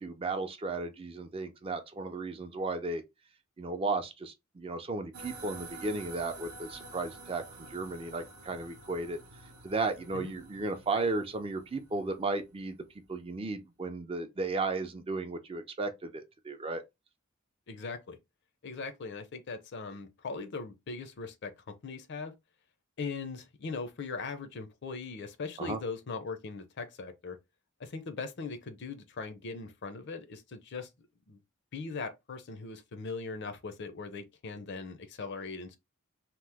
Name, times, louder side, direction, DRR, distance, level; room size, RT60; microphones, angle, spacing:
voice 1, 0.0-3.0 3.6-7.4 7.7-9.2 9.6-12.8 13.1-16.8 25.6-25.8, right 3 dB, 25° right, 0.4 m, -34 dB
sound 1, 5.1-12.8, right 2 dB, 75° right, 0.7 m, -49 dB
voice 2, 17.7-18.2 18.6-21.5 21.8-22.3 23.0-27.4 27.8-30.9 31.3-31.4 31.7-35.8, left 4 dB, 55° left, 0.5 m, -40 dB
2.9 x 2.0 x 3.3 m
head